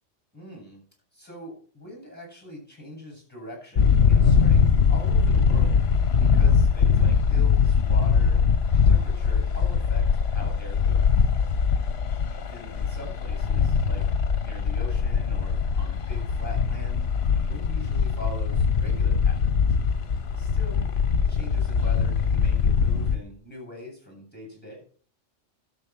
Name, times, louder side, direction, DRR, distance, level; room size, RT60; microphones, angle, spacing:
voice 1, 0.3-0.8 1.1-8.4 8.7-11.0 12.3-14.1 14.4-17.1 17.5-19.4 20.4-20.8 21.3-24.8, left 1 dB, 10° left, 1 dB, 8.0 m, -42 dB
sound 1, 3.8-23.2, left 6 dB, 60° left, 1.2 m, -22 dB
12.0 x 7.1 x 7.6 m, 0.43 s
omnidirectional pair, 1.2 m